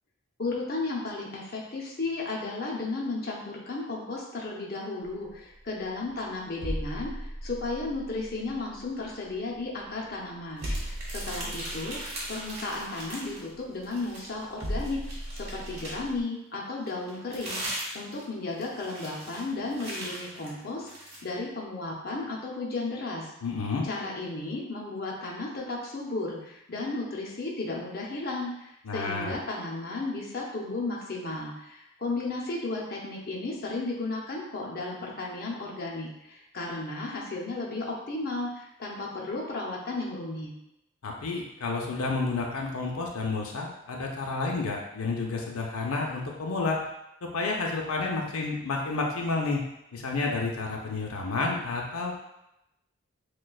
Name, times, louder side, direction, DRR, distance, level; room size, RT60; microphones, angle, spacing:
voice 1, 0.4-15.0 15.3-23.3 23.8-40.5, left 2 dB, 45° left, -2 dB, 0.7 m, -34 dB
sound 1, 5.0-16.2, equal, 70° right, 0.9 m, -38 dB
sound 2, 10.6-13.5 13.8-16.1 16.9-21.2, right 1 dB, 45° right, 1.3 m, -39 dB
voice 2, 23.4-23.8 28.8-29.3 41.0-46.8 47.2-49.6 49.9-52.2, left 3 dB, 80° left, 0 dB, 0.6 m, -30 dB
6.2 x 2.3 x 2.3 m, 0.86 s
head